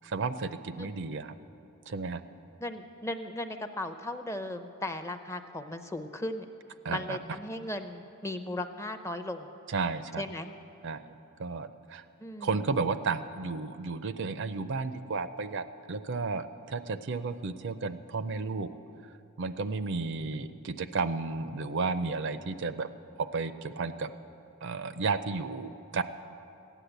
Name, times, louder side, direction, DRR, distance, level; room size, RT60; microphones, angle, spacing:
voice 1, 0.0-1.3 1.9-2.2 6.8-7.2 9.7-10.2 10.8-11.0 11.4-12.0 12.4-18.7 19.4-22.9 23.2-24.1 24.6-26.0, right 4 dB, 55° right, 12 dB, 0.5 m, -33 dB
voice 2, 2.6-6.5 6.9-9.5 10.2-10.5 12.2-12.6, left 1 dB, 15° left, 8 dB, 0.6 m, -37 dB
16.0 x 10.0 x 8.0 m, 2.8 s
head